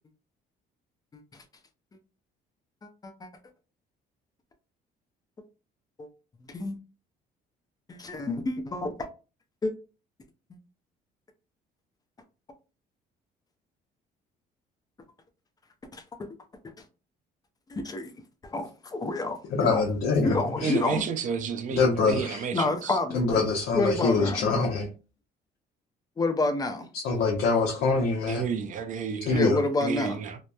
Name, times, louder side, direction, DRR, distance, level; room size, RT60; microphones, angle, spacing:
voice 1, 1.1-1.4 2.8-3.3 6.0-6.1 6.4-6.7 7.9-9.1 9.6-9.7 15.9-16.3 17.7-18.1 18.4-19.8 20.2-21.0 22.5-23.5 23.7-24.7 26.2-26.9 29.3-30.2, left 2 dB, 20° left, 0.5 m, -29 dB
voice 2, 19.5-20.7 21.7-22.4 23.1-24.9 27.0-28.4 29.2-29.6, left 4 dB, 75° left, 0.6 m, -24 dB
voice 3, 20.6-23.0 28.3-29.4 29.8-30.4, right 6 dB, 50° right, 0.5 m, -31 dB
2.9 x 2.0 x 2.2 m
cardioid pair, 110°, 17 cm